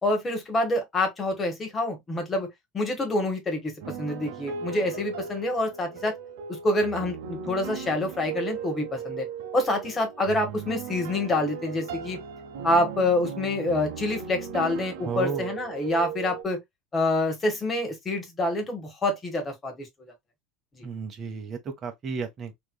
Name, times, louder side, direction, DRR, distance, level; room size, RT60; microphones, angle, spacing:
voice 1, 0.0-2.5 2.7-6.1 6.5-9.3 9.5-12.2 12.6-16.6 16.9-20.1 20.8-20.9, left 1 dB, 20° left, 1.4 m, -27 dB
sound 1, 3.8-16.4, right 6 dB, 80° right, 0.8 m, -37 dB
voice 2, 15.0-15.5 20.8-22.5, right 5 dB, 30° right, 0.9 m, -33 dB
3.3 x 3.0 x 2.2 m
supercardioid pair, 140°, 0 cm